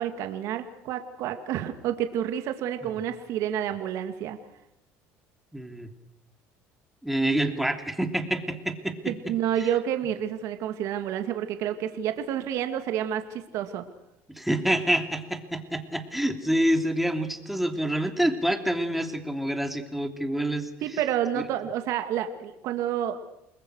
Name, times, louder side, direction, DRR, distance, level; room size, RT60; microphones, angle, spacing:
voice 1, 0.0-4.4 9.1-13.8 20.8-23.2, right 10 dB, 65° right, 7 dB, 2.3 m, -29 dB
voice 2, 5.5-5.9 7.0-9.3 14.3-21.0, right 1 dB, 5° right, 5 dB, 3.1 m, -27 dB
29.0 x 21.5 x 6.5 m, 0.83 s
supercardioid pair, 105°, 6 cm